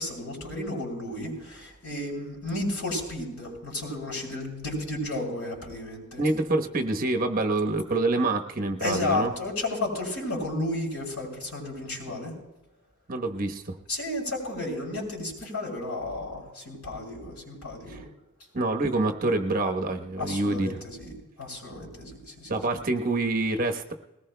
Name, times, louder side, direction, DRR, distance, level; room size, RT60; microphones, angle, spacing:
voice 1, 0.0-6.2 8.8-12.3 13.9-18.0 20.2-21.1 21.4-22.7, left 2 dB, 90° left, -1 dB, 6.7 m, -33 dB
voice 2, 6.2-9.3 13.1-13.8 17.9-18.0 18.5-20.8 22.5-23.9, right 2 dB, 40° right, 5 dB, 1.1 m, -26 dB
21.0 x 19.0 x 2.2 m, 1.0 s
head